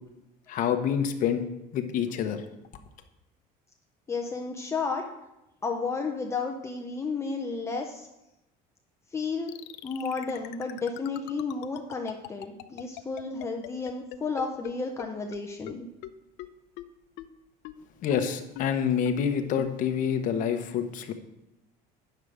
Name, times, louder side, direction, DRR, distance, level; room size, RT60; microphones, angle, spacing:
voice 1, 0.5-1.4 1.7-2.4 18.0-21.1, left 8 dB, 50° left, 6 dB, 0.9 m, -27 dB
voice 2, 4.1-5.0 5.6-8.1 9.1-9.5 9.8-15.9, left 4 dB, 15° left, 2 dB, 0.6 m, -32 dB
sound 1, 9.5-14.7 15.0-15.1 15.3-15.4 15.7-15.8 16.0-16.1 16.4-16.5 16.8-16.9 17.2-17.3 17.6-17.7 18.1-18.2 18.6-18.7 19.1-19.2 19.6-19.7, left 17 dB, 90° left, 0.6 m, -40 dB
9.4 x 6.7 x 4.9 m, 0.91 s
cardioid pair, 170°, 18 cm